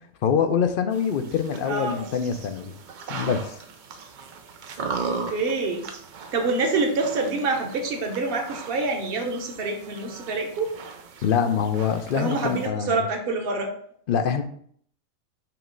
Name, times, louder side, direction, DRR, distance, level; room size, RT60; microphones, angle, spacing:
voice 1, 0.2-2.7 3.1-3.5 11.2-13.0 14.1-14.4, left 7 dB, 65° left, 8 dB, 0.5 m, -24 dB
sound 1, 0.9-12.7, right 4 dB, 65° right, 0.4 m, -38 dB
voice 2, 1.6-2.1 5.0-5.9 6.3-10.7 12.1-13.7, right 3 dB, 45° right, 3 dB, 1.1 m, -26 dB
5.9 x 3.1 x 5.1 m, 0.62 s
omnidirectional pair, 1.4 m